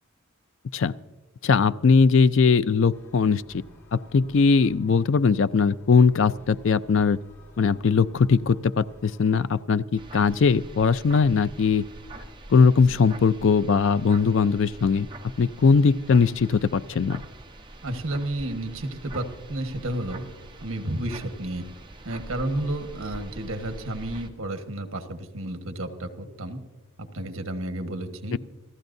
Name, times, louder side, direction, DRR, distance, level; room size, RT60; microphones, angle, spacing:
voice 1, 1.4-3.6 3.9-7.2 7.6-11.9 12.5-15.1 15.4-17.2 28.3-28.4, left 5 dB, 55° left, 15 dB, 0.4 m, -20 dB
sound 1, 2.9-9.6, left 1 dB, 80° left, 3.7 m, -53 dB
sound 2, 10.0-24.3, right 2 dB, 20° right, 1.0 m, -43 dB
voice 2, 17.8-20.3 20.6-21.7 22.0-26.6 27.0-28.4, right 1 dB, 70° right, 7 dB, 1.4 m, -31 dB
29.0 x 14.5 x 2.7 m, 1.2 s
head